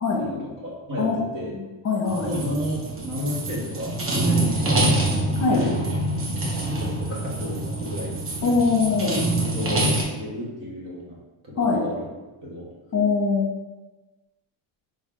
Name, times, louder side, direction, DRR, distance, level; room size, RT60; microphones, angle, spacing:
voice 1, 0.2-1.5 2.2-5.0 5.5-5.9 6.5-8.3 9.4-11.2 11.4-12.1 12.4-12.7, left 1 dB, 45° right, -4 dB, 1.2 m, -32 dB
voice 2, 1.0-2.3 5.4-5.6 8.4-9.2 11.6-11.8 12.9-13.4, left 4 dB, 35° left, -2 dB, 0.8 m, -22 dB
sound 1, 2.1-10.0, right 1 dB, 30° right, 0.7 m, -25 dB
3.9 x 2.1 x 3.7 m, 1.2 s
cardioid pair, 105°, 46 cm